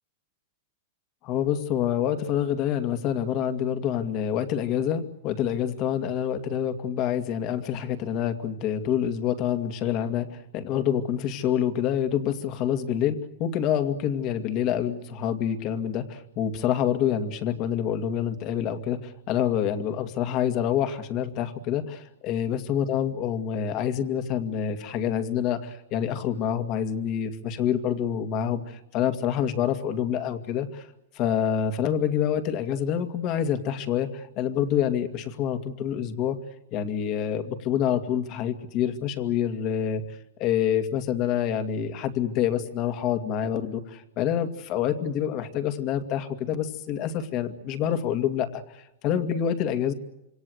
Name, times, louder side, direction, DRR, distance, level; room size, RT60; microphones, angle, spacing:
voice 1, 1.2-30.9 31.2-36.4 36.7-40.0 40.4-48.6 49.0-49.9, left 9 dB, 40° left, 8 dB, 2.3 m, -27 dB
27.0 x 23.5 x 8.1 m, 0.88 s
supercardioid pair, 135°, 0 cm